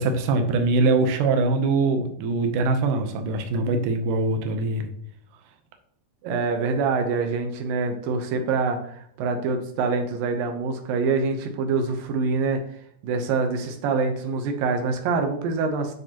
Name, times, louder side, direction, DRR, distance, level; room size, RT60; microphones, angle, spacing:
voice 1, 0.0-4.9, right 3 dB, 90° right, 6 dB, 1.8 m, -23 dB
voice 2, 6.2-12.6 13.0-15.9, right 4 dB, 75° right, 5 dB, 2.2 m, -25 dB
9.7 x 6.4 x 3.0 m, 0.67 s
omnidirectional pair, 5.0 m